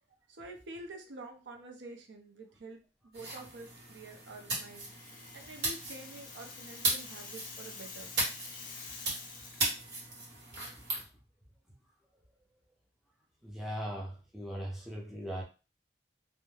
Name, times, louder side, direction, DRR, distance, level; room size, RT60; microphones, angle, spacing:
voice 1, 0.3-4.9 5.3-8.1, right 2 dB, 85° right, 0.5 m, -48 dB
sound 1, 3.1-11.0, right 2 dB, 65° right, 1.1 m, -37 dB
Rattle (instrument), 4.6-9.8, left 4 dB, 50° left, 0.5 m, -48 dB
voice 2, 13.4-15.4, equal, ahead, 0.6 m, -39 dB
2.3 x 2.1 x 3.1 m
head